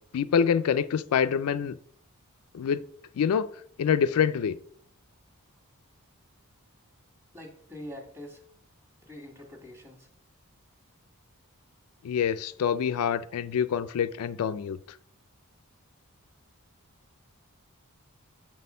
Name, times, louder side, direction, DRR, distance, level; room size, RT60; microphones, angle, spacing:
voice 1, 0.1-1.8 2.5-2.8 3.2-3.5 3.8-4.6 12.0-14.8, left 7 dB, 75° left, 0.4 m, -26 dB
voice 2, 7.3-8.4 9.0-10.1, left 1 dB, 10° right, 1.4 m, -44 dB
7.3 x 4.2 x 5.4 m
head